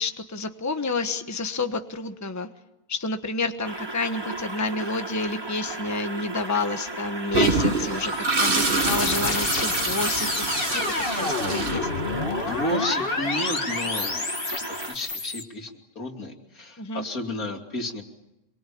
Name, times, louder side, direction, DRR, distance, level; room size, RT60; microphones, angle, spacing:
voice 1, 0.0-2.5 2.9-10.3 10.7-10.8 11.1-11.9 16.8-17.0, left 3 dB, 10° left, 7 dB, 1.2 m, -29 dB
sound 1, 3.6-15.0, right 2 dB, 20° right, 1.3 m, -35 dB
Toilet flush, 7.3-12.4, right 3 dB, 40° right, 1.9 m, -26 dB
sound 2, 7.8-15.4, left 3 dB, 40° left, 2.0 m, -29 dB
voice 2, 12.3-14.3 14.7-18.0, left 1 dB, 75° left, 4 dB, 3.3 m, -32 dB
27.5 x 23.0 x 8.6 m, 0.93 s
omnidirectional pair, 1.5 m